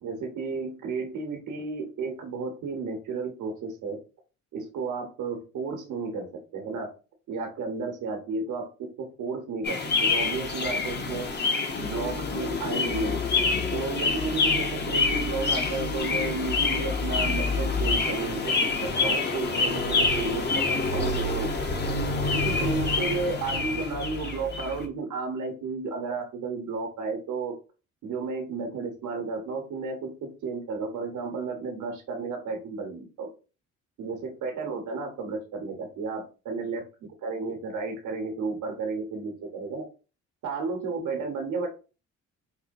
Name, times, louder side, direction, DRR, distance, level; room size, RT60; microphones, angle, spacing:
voice 1, 0.0-4.0 4.5-6.9 7.3-11.3 11.8-13.2 13.7-20.7 20.9-21.5 22.3-27.5 28.0-33.3 34.0-36.8 37.2-39.9 40.4-41.7, right 4 dB, 80° right, 3 dB, 1.0 m, -33 dB
sound 1, 9.6-24.9, left 3 dB, 35° left, 0.7 m, -27 dB
4.4 x 2.2 x 2.5 m, 0.33 s
cardioid pair, 90°, 30 cm